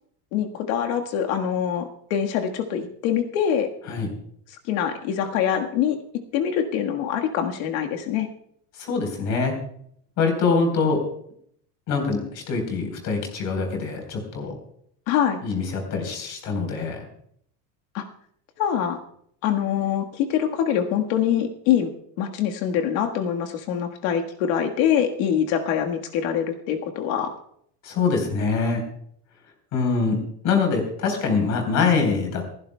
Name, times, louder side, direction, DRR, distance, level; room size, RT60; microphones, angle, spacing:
voice 1, 0.3-3.7 4.5-6.0 6.3-8.3 15.1-15.4 17.9-18.0 18.6-19.0 19.4-21.9 22.2-27.4, left 9 dB, 60° left, 4 dB, 1.6 m, -24 dB
voice 2, 8.8-9.6 10.2-11.0 11.9-14.5 15.4-17.0 27.8-28.8 29.7-30.2 30.4-32.4, left 4 dB, 35° left, 3 dB, 4.2 m, -24 dB
28.0 x 11.0 x 2.3 m, 0.68 s
supercardioid pair, 155°, 48 cm